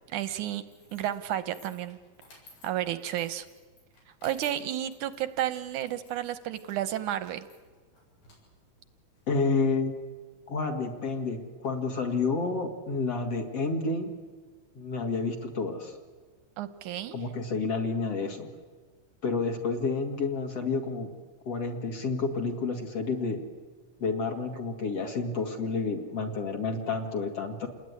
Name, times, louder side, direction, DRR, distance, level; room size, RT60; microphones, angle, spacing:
voice 1, 0.1-0.6 0.9-2.0 2.6-3.5 4.2-7.5 16.6-17.2, right 12 dB, 70° right, 12 dB, 2.0 m, -32 dB
sound 1, 0.7-9.5, left 3 dB, 75° left, 9.2 m, -57 dB
voice 2, 9.3-9.9 10.5-14.1 14.7-15.9 17.1-18.5 19.2-21.1 21.5-23.4 24.0-27.7, left 4 dB, 45° left, 3 dB, 2.8 m, -30 dB
28.5 x 20.0 x 9.8 m, 1.5 s
omnidirectional pair, 4.3 m